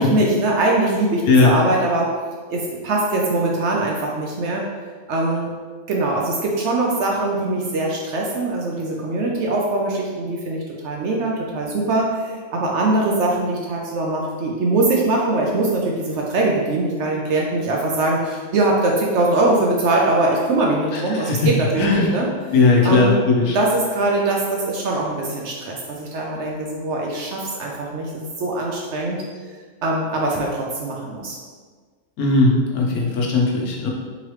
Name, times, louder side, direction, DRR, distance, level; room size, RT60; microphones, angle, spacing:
voice 1, 0.0-2.1 2.5-4.6 5.1-5.5 5.9-22.3 22.8-23.1 23.5-29.2 29.8-31.4, right 2 dB, 65° right, -2 dB, 0.7 m, -22 dB
voice 2, 20.9-21.5 21.8-22.2 22.5-23.6 32.2-33.9, left 3 dB, 85° left, -1 dB, 1.2 m, -17 dB
3.8 x 3.0 x 3.1 m, 1.5 s
omnidirectional pair, 1.5 m